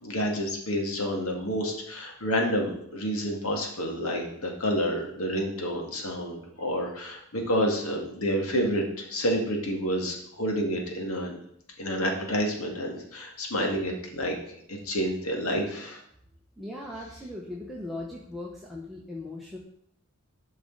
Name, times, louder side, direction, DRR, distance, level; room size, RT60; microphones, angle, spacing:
voice 1, 0.0-11.4 11.8-14.4 14.7-16.0, equal, 85° left, 1 dB, 1.9 m, -29 dB
voice 2, 16.6-19.6, left 2 dB, ahead, -4 dB, 1.0 m, -38 dB
12.5 x 5.4 x 3.9 m, 0.71 s
head